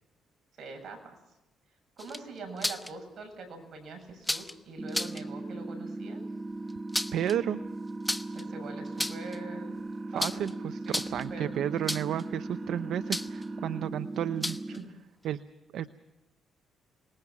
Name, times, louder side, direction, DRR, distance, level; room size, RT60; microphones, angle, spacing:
voice 1, 0.6-1.2 2.0-6.2 8.3-9.7 10.1-10.4 10.8-11.0 11.3-11.6 14.7-14.9, right 3 dB, 55° right, 5 dB, 7.6 m, -43 dB
sound 1, 2.0-2.9 4.2-4.5 4.9-5.2 6.7-7.3 8.1-8.4 8.9-9.4 10.2-10.5 10.8-11.3 11.9-12.2 13.1-13.4 14.4-14.8, left 1 dB, 5° left, 1.0 m, -32 dB
sound 2, 4.8-14.8, right 2 dB, 15° right, 0.9 m, -38 dB
sound 3, 5.2-13.8, right 4 dB, 40° right, 2.8 m, -52 dB
voice 2, 7.1-7.6 10.1-14.6 15.2-15.4 15.7-15.9, right 10 dB, 75° right, 12 dB, 0.8 m, -32 dB
26.0 x 21.0 x 6.0 m, 0.94 s
cardioid pair, 90°, 0 cm